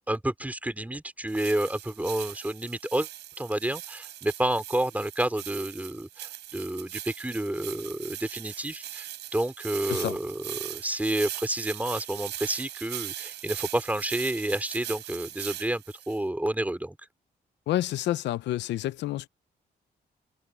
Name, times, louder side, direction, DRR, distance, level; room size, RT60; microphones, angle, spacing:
voice 1, 0.1-3.1 3.4-17.0, right 1 dB, 10° right, 3.6 m, -30 dB
sound 1, 1.3-16.2, right 13 dB, 85° right, 4.2 m, -40 dB
voice 2, 17.7-19.3, left 14 dB, 85° left, 0.8 m, -29 dB
cardioid pair, 70°, 18 cm